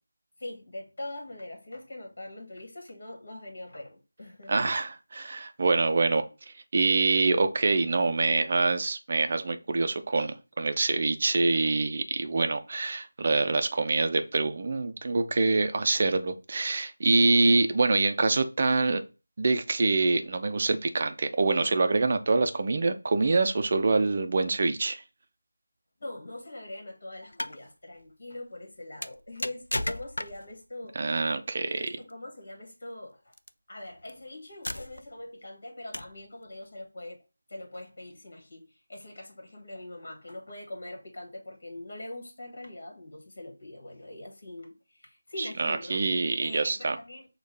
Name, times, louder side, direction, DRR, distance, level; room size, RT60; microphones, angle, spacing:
voice 1, 0.4-4.7 26.0-31.0 31.6-33.2 33.7-37.2 37.5-46.0 46.4-47.3, left 1 dB, 55° left, 1.6 m, -43 dB
voice 2, 4.5-6.3 6.7-19.0 19.4-25.0 31.0-31.9 45.4-47.0, right 3 dB, 40° right, 0.5 m, -25 dB
sound 1, 27.2-27.6 29.0-30.6 31.9-32.1 33.3-33.5 34.1-34.2 34.6-35.2 35.9-36.2, left 1 dB, 85° left, 0.4 m, -34 dB
6.3 x 2.3 x 3.3 m
figure-of-eight pair, 170°, 0 cm